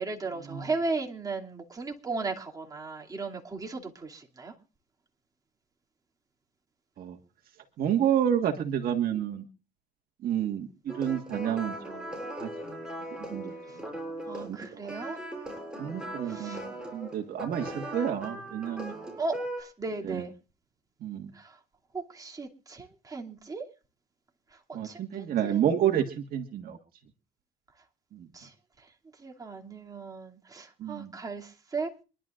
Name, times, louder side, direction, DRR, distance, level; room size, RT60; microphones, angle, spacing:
voice 1, 0.0-4.5 14.3-15.2 16.3-16.6 19.2-20.3 21.4-21.5 21.9-23.6 24.7-25.0 25.4-25.6 28.3-28.5 29.2-31.9, right 3 dB, 20° right, 0 dB, 2.7 m, -36 dB
voice 2, 7.8-9.5 10.2-12.0 12.4-12.8 13.1-13.5 14.4-14.9 15.8-18.9 20.0-20.3 21.0-21.3 24.7-26.8 28.1-28.3 30.8-31.1, right 9 dB, 60° right, 3 dB, 1.7 m, -30 dB
sound 1, 10.9-19.6, right 1 dB, 5° right, 6.9 m, -39 dB
26.0 x 11.5 x 2.5 m, 0.33 s
cardioid pair, 110°, 17 cm